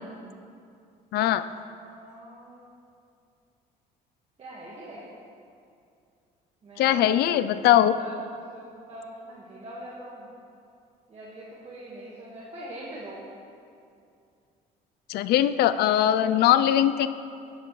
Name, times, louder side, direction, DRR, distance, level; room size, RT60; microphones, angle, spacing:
voice 1, 1.1-1.5 6.8-7.9 15.1-17.1, left 11 dB, 70° left, 13 dB, 0.4 m, -21 dB
voice 2, 1.8-2.6 4.4-5.0 6.6-7.2 7.9-8.1 8.5-10.3 11.1-13.2, right 1 dB, 40° right, -6 dB, 1.7 m, -42 dB
11.5 x 9.2 x 3.2 m, 2.5 s
cardioid pair, 110°, 17 cm